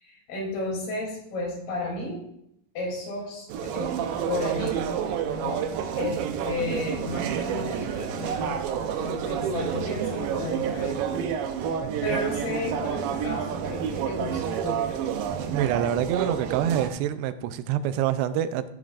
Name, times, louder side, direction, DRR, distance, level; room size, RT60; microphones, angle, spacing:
voice 1, 0.0-2.3 2.7-3.9 4.3-4.8 5.2-5.7 5.9-8.6 9.0-11.0 11.7-15.1, left 2 dB, 65° left, -2 dB, 4.9 m, -33 dB
flea market, 3.5-16.9, right 8 dB, 75° right, 2.3 m, -29 dB
voice 2, 11.8-12.2 15.5-18.6, right 10 dB, 90° right, 12 dB, 2.8 m, -26 dB
15.5 x 9.6 x 2.5 m, 0.75 s
omnidirectional pair, 4.8 m